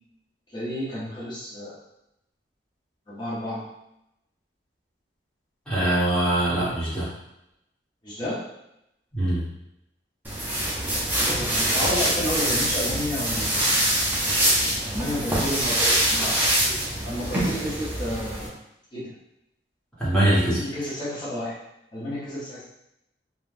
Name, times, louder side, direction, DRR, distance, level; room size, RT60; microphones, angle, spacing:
voice 1, 0.5-1.8 3.1-3.6 8.0-8.4 11.2-13.7 14.9-16.8 17.0-18.5 18.9-19.1 20.5-21.6 21.9-22.6, left 1 dB, 25° left, -9 dB, 0.8 m, -31 dB
voice 2, 5.7-7.1 9.1-9.4 20.0-20.6, right 1 dB, 5° left, -10 dB, 1.1 m, -22 dB
sound 1, 10.2-18.5, right 1 dB, 10° right, 0.5 m, -24 dB
3.3 x 2.3 x 2.5 m, 0.84 s
head